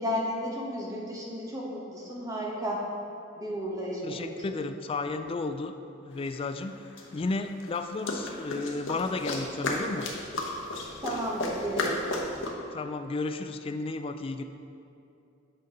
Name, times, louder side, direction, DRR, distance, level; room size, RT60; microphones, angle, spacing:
voice 1, 0.0-2.8 3.4-4.6 11.0-12.0, equal, 15° right, -4 dB, 1.1 m, -33 dB
voice 2, 4.0-5.7 6.0-10.1 12.7-14.4, left 3 dB, 30° left, 8 dB, 0.3 m, -33 dB
sound 1, 6.3-6.4 7.0-12.5, left 2 dB, 70° left, 0.9 m, -33 dB
8.1 x 5.3 x 3.8 m, 2.6 s
head